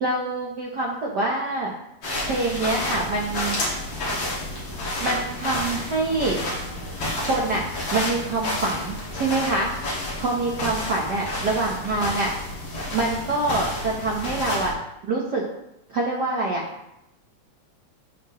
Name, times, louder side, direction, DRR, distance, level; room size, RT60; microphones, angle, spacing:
voice 1, 0.0-1.7 2.3-3.6 5.0-6.4 7.2-7.6 7.9-9.7 10.2-12.3 12.9-14.7 15.1-15.4 15.9-16.6, right 2 dB, 60° right, -3 dB, 1.1 m, -25 dB
sound 1, 2.0-14.7, left 1 dB, 50° left, 3.2 m, -30 dB
14.0 x 4.7 x 3.2 m, 0.83 s
omnidirectional pair, 3.4 m